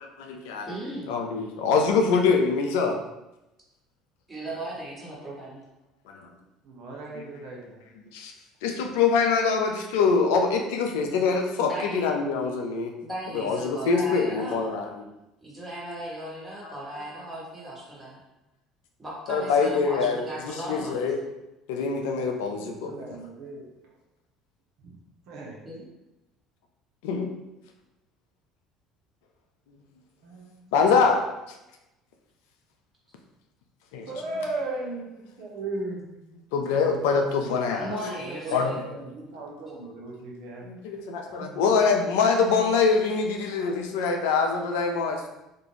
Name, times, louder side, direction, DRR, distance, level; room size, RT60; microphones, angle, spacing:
voice 1, 0.0-0.7 1.1-3.0 6.1-6.3 8.1-8.3 8.6-12.9 13.3-14.9 16.6-16.7 19.3-21.2 21.7-23.0 27.0-27.3 30.7-31.3 33.9-34.1 36.5-38.0 38.5-38.7 40.6-45.3, left 5 dB, 75° left, 3 dB, 0.3 m, -24 dB
voice 2, 0.7-1.1 4.3-5.6 11.6-12.0 13.0-14.7 15.4-18.2 19.0-21.1 25.6-25.9 37.7-38.8 41.4-41.6, right 1 dB, 15° right, -6 dB, 1.2 m, -37 dB
voice 3, 6.6-7.8 22.5-23.9 24.8-24.9 25.3-25.6 30.2-30.5 34.1-36.1 38.0-40.6, right 2 dB, 65° right, -2 dB, 0.6 m, -36 dB
2.4 x 2.1 x 3.0 m, 0.94 s
hypercardioid pair, 70°, 0 cm